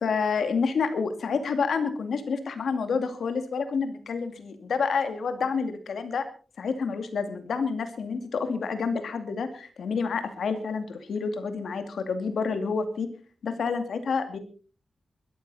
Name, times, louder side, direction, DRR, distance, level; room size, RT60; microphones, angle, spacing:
voice 1, 0.0-6.3 6.6-13.1 13.4-14.4, left 5 dB, 85° left, 8 dB, 2.5 m, -28 dB
22.0 x 13.5 x 4.2 m, 0.40 s
wide cardioid pair, 170°, 0 cm